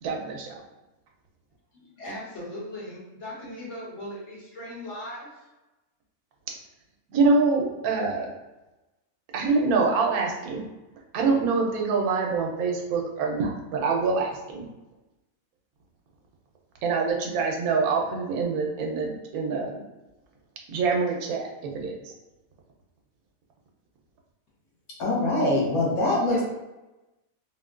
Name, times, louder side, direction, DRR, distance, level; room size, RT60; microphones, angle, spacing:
voice 1, 0.0-0.6 7.1-8.3 9.3-10.6 11.1-14.6 16.8-19.8 20.7-22.1, right 4 dB, 90° right, 0 dB, 1.1 m, -25 dB
voice 2, 1.7-5.5 26.3-26.4, left 1 dB, 55° left, -7 dB, 1.4 m, -39 dB
voice 3, 25.0-26.4, left 2 dB, 85° left, -4 dB, 1.3 m, -23 dB
3.7 x 2.1 x 2.3 m, 1.0 s
omnidirectional pair, 1.5 m